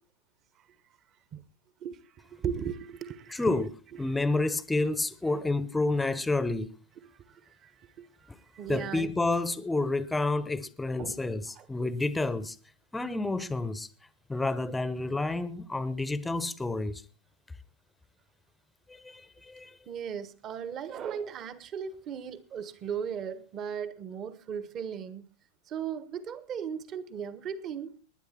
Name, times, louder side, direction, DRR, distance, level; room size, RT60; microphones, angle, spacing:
voice 1, 2.3-3.5 7.6-7.7 8.0-8.1 8.5-9.1 11.0-11.6 19.9-25.2 25.7-28.0, right 7 dB, 30° right, 1.2 m, -37 dB
voice 2, 3.3-3.7 4.0-6.7 8.3-8.4 8.7-12.6 12.9-13.9 14.3-17.0 18.9-19.7, left 2 dB, 10° left, 0.9 m, -29 dB
19.5 x 10.5 x 4.3 m
figure-of-eight pair, 90°, 0 cm